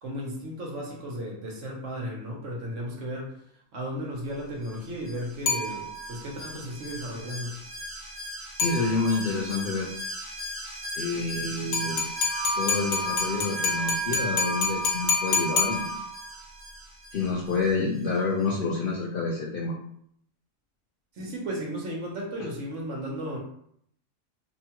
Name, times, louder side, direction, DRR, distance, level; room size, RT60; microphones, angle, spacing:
voice 1, 0.0-3.4 3.7-7.6 21.1-23.4, equal, 65° right, -1 dB, 1.0 m, -35 dB
Alarm, 4.6-18.1 18.4-18.5, equal, 30° right, 0.7 m, -39 dB
sound 1, 5.5-6.3 8.6-9.3 11.7-16.3, left 4 dB, 90° left, 1.0 m, -29 dB
voice 2, 8.6-9.9 11.0-12.0 12.5-16.0 17.1-19.7, left 3 dB, 70° left, -3 dB, 0.5 m, -28 dB
Wind instrument woodwind instrument, 12.3-16.0, equal, 50° left, 1.3 m, -34 dB
2.8 x 2.2 x 2.8 m, 0.68 s
omnidirectional pair, 1.4 m